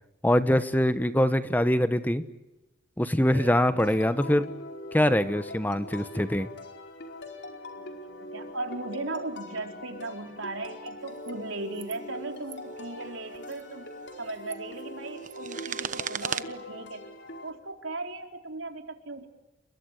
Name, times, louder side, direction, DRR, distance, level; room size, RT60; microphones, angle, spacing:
voice 1, 0.2-2.2 3.0-4.5 4.9-6.5, left 1 dB, 10° left, 11 dB, 1.1 m, -23 dB
voice 2, 3.3-3.9 7.8-13.9 14.2-17.1 17.4-19.3, right 2 dB, 80° right, 4 dB, 4.4 m, -37 dB
sound 1, 3.8-17.5, left 1 dB, 60° left, 4.6 m, -42 dB
sound 2, 11.1-11.3 11.7-12.0 12.3-12.6 13.4-13.6 14.2-16.4, right 8 dB, 40° right, 1.1 m, -36 dB
30.0 x 23.0 x 8.3 m, 0.99 s
head